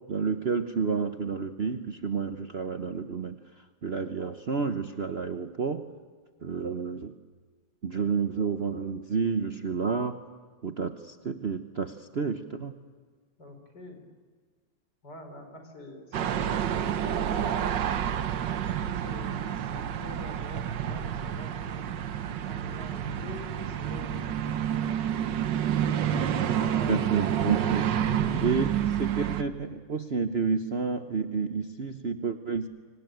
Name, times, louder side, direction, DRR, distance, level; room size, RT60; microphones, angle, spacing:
voice 1, 0.1-3.4 3.8-5.8 6.4-7.1 7.8-10.2 10.6-12.7 26.9-27.8 28.4-32.7, right 5 dB, 45° right, 8 dB, 0.9 m, -30 dB
voice 2, 13.4-14.0 15.0-18.0 18.6-21.9 22.4-25.3 25.9-27.5 28.2-28.5, left 1 dB, 65° left, 5 dB, 5.0 m, -45 dB
sound 1, 16.1-29.4, right 9 dB, 75° right, 1.6 m, -29 dB
25.0 x 25.0 x 9.2 m, 1.5 s
omnidirectional pair, 2.0 m